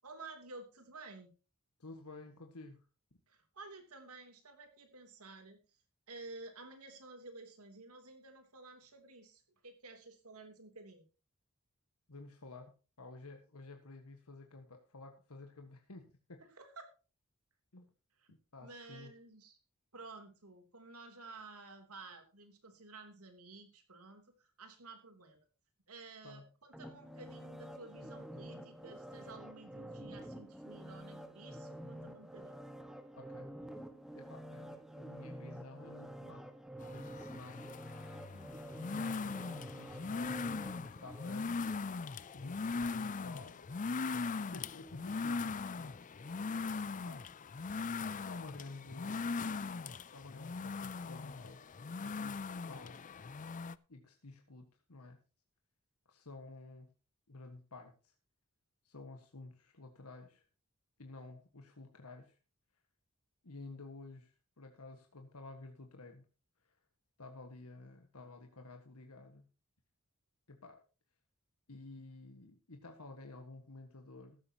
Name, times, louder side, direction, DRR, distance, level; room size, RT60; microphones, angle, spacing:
voice 1, 0.0-1.3 3.3-5.6 6.1-11.1 16.4-16.9 18.2-18.3 18.6-19.6 19.9-25.4 25.9-32.6 38.3-38.7 46.6-47.2, right 3 dB, 85° right, 6 dB, 3.2 m, -53 dB
voice 2, 1.8-2.8 12.1-12.7 13.0-16.4 17.7-17.9 18.3-19.1 26.2-26.4 33.1-33.5 34.1-36.5 36.8-37.7 38.9-41.8 42.3-43.6 44.5-46.3 46.9-47.2 48.0-49.2 49.9-51.6 52.0-53.1 53.9-55.2 56.0-56.9 57.3-58.1 58.8-60.4 61.0-62.4 63.4-66.2 66.6-66.7 67.2-69.4 70.5-70.8 71.7-74.4, left 3 dB, 85° left, 4 dB, 1.7 m, -52 dB
sound 1, 26.7-41.8 42.2-42.3, right 1 dB, ahead, 1.4 m, -49 dB
sound 2, 36.8-53.8, left 4 dB, 35° left, 0.5 m, -40 dB
15.0 x 12.5 x 2.9 m, 0.32 s
head